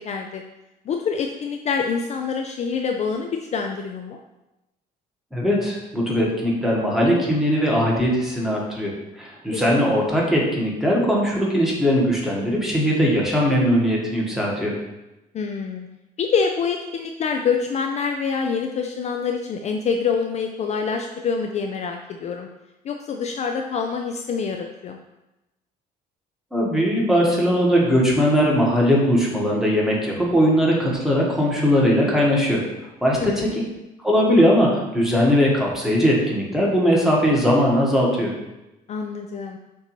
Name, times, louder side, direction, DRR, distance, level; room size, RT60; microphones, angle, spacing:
voice 1, 0.1-0.4 0.9-4.2 9.5-9.9 15.3-15.9 16.2-22.5 22.8-25.0 33.2-33.5 38.9-39.6, left 5 dB, 40° left, 3 dB, 0.4 m, -26 dB
voice 2, 5.3-14.7 26.5-32.6 33.0-33.6 34.0-38.3, equal, ahead, -4 dB, 1.3 m, -20 dB
6.5 x 2.7 x 3.1 m, 0.96 s
cardioid pair, 110°, 17 cm